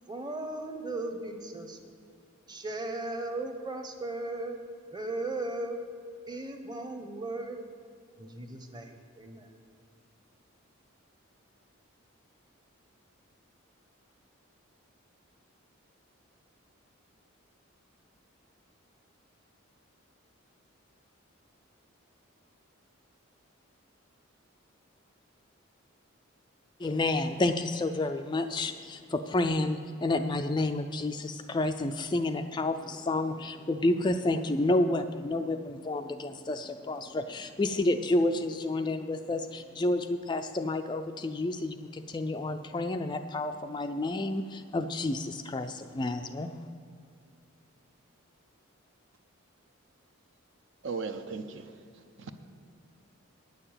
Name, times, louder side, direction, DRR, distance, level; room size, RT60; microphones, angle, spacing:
voice 1, 0.1-1.8 2.5-4.6 4.9-5.8 6.3-7.6 8.2-9.5, right 2 dB, 20° right, 5 dB, 0.9 m, -36 dB
voice 2, 26.8-46.5, left 2 dB, 20° left, 7 dB, 0.3 m, -30 dB
voice 3, 50.8-51.7 52.2-52.3, right 4 dB, 60° right, 8 dB, 0.7 m, -36 dB
9.5 x 6.7 x 8.9 m, 2.4 s
head